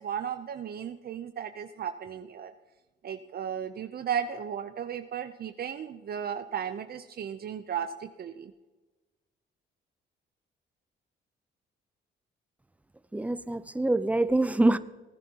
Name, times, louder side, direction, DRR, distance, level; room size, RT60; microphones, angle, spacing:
voice 1, 0.0-2.5 3.0-8.5, right 8 dB, 50° right, 8 dB, 0.6 m, -35 dB
voice 2, 13.1-14.8, right 2 dB, 5° right, 14 dB, 0.6 m, -25 dB
19.5 x 10.5 x 2.9 m, 1.2 s
cardioid pair, 90°, 20 cm